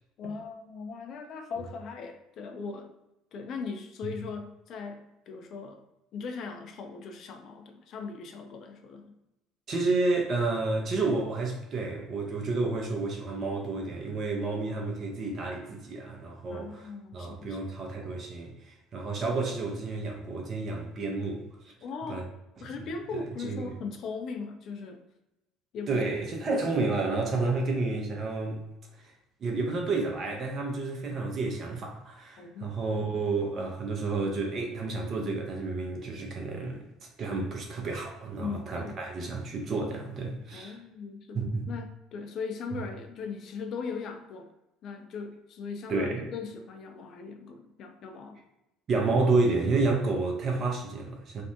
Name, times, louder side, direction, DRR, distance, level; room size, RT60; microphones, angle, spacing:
voice 1, 0.2-2.9 3.3-5.8 6.1-9.1 16.5-17.7 21.8-22.3 22.6-25.0 25.7-26.0 27.3-27.5 32.4-32.7 38.4-39.0 39.3-39.4 40.5-44.5 44.8-48.4, left 5 dB, 55° left, 6 dB, 0.4 m, -39 dB
voice 2, 9.7-21.4 22.1-22.2 22.6-22.7 23.1-23.7 25.9-28.6 29.0-29.1 29.4-36.8 37.2-40.8 41.3-41.7 45.9-46.2 48.9-51.4, right 3 dB, 45° right, 0 dB, 0.6 m, -30 dB
2.6 x 2.1 x 2.6 m, 0.93 s
hypercardioid pair, 60°, 0 cm